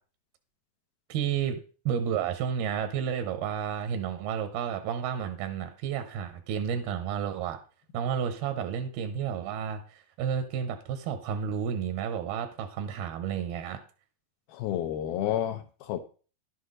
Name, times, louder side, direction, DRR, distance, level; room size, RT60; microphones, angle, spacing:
voice 1, 1.1-1.6 1.9-7.6 7.9-13.8, right 8 dB, 90° right, 2.9 m, -31 dB
voice 2, 14.5-16.0, left 11 dB, 85° left, 2.8 m, -30 dB
11.0 x 7.9 x 3.9 m
omnidirectional pair, 4.3 m